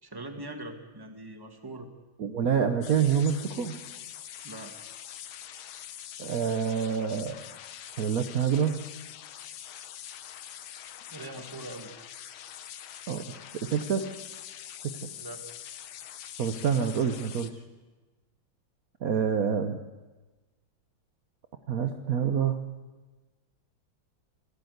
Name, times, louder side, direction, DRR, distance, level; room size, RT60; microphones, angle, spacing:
voice 1, 0.0-1.9 4.4-4.7 11.1-11.9 15.2-15.5, right 2 dB, 10° right, 5 dB, 1.8 m, -41 dB
voice 2, 2.2-3.8 6.2-7.4 8.0-8.8 13.1-13.2 13.5-14.1 14.8-15.1 16.4-17.6 19.0-19.8 21.7-22.6, right 7 dB, 55° right, 7 dB, 1.3 m, -27 dB
sound 1, 2.8-17.5, left 10 dB, 80° left, 1.7 m, -44 dB
27.0 x 13.5 x 8.0 m, 1.2 s
omnidirectional pair, 2.2 m